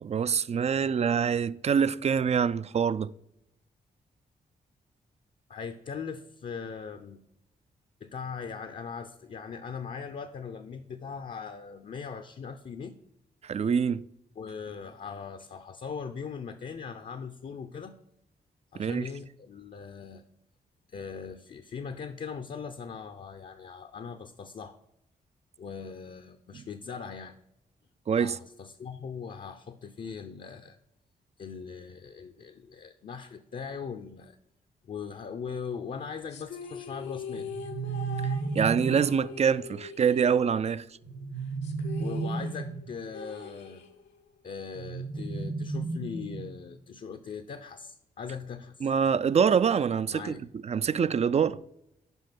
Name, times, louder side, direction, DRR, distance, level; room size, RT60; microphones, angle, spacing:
voice 1, 0.0-3.1 13.4-14.0 18.8-19.1 26.5-26.6 28.1-28.4 38.5-40.9 48.8-50.4 50.6-51.6, right 7 dB, 40° right, 0.3 m, -25 dB
voice 2, 5.5-7.2 8.0-12.9 14.4-17.9 18.7-20.2 20.9-24.8 25.6-27.3 28.2-30.8 31.4-34.4 34.8-37.5 42.0-43.8 44.4-48.9 50.1-50.4, left 6 dB, 50° left, 0.6 m, -40 dB
sound 1, 36.3-41.0 41.2-41.3 41.6-44.3, left 5 dB, 85° left, 0.8 m, -42 dB
sound 2, 37.3-39.2 41.0-42.9 44.7-46.7, right 4 dB, 70° right, 2.0 m, -33 dB
5.4 x 5.2 x 5.9 m
supercardioid pair, 50°, 18 cm